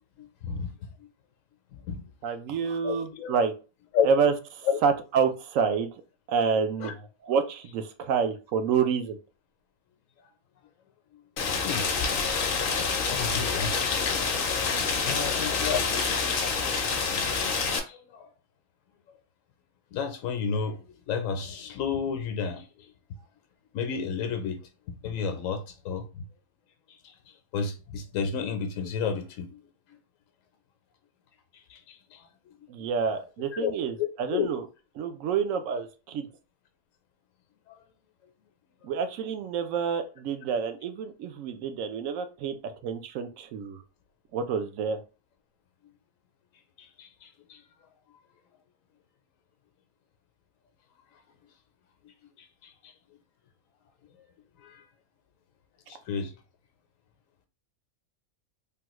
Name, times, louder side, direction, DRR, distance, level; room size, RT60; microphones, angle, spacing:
voice 1, 0.2-0.9 1.7-2.1 2.8-3.3 3.9-4.1 4.7-4.8 6.8-6.9 11.5-11.9 13.1-14.2 15.0-15.9 16.4-16.5 17.4-18.3 19.9-20.8 21.1-22.9 23.7-24.6 24.9-26.0 27.0-27.1 27.5-29.6 31.7-32.3 33.5-33.7 34.0-34.5 37.7-37.8 46.8-47.6 52.6-52.9 54.6-54.8 55.9-56.3, left 6 dB, 75° left, 1.0 m, -32 dB
voice 2, 2.2-3.5 4.0-5.9 6.3-9.2 32.7-34.6 35.0-36.3 38.8-43.8 44.3-45.0, right 6 dB, 75° right, 0.9 m, -28 dB
Rain, 11.4-17.8, left 5 dB, 55° left, 0.6 m, -27 dB
3.4 x 2.2 x 3.0 m
omnidirectional pair, 1.4 m